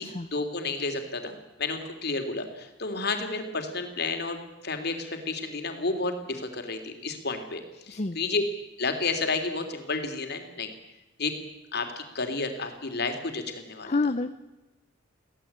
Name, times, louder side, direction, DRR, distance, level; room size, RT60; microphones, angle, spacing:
voice 1, 0.3-8.4 8.8-10.7 11.2-11.3 11.7-13.9, left 3 dB, 55° left, 6 dB, 3.3 m, -31 dB
voice 2, 13.8-14.3, left 3 dB, 35° left, 9 dB, 0.7 m, -28 dB
23.5 x 16.5 x 8.8 m, 1.0 s
head